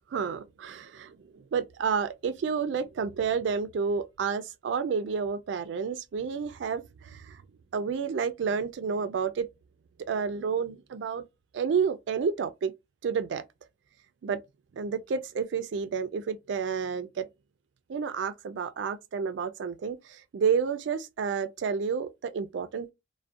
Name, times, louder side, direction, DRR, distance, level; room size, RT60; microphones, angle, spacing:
voice 1, 0.1-7.4 7.7-9.5 10.1-11.2 11.5-12.7 13.0-13.4 14.2-14.4 14.7-17.3 17.9-22.9, right 6 dB, 70° right, 0.3 m, -30 dB
2.3 x 2.1 x 2.5 m
head